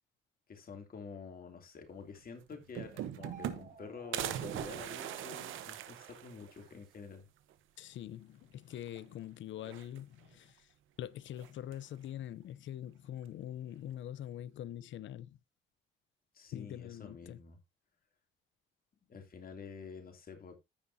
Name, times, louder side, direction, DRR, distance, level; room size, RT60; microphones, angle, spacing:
voice 1, 0.5-7.3 16.3-17.6 19.1-20.6, left 5 dB, 45° left, 2.9 m, -48 dB
sound 1, 2.2-2.3 2.5-3.8 4.1-6.7 7.1-7.2 7.5-7.6 8.8-9.2 9.6-10.3 11.4-11.9, right 11 dB, 85° right, 1.1 m, -41 dB
sound 2, 3.1-4.3, right 5 dB, 40° right, 2.2 m, -52 dB
voice 2, 7.8-10.7 11.0-15.4 16.5-17.4, left 11 dB, 70° left, 0.7 m, -44 dB
15.0 x 5.5 x 2.7 m
cardioid pair, 90°, 20 cm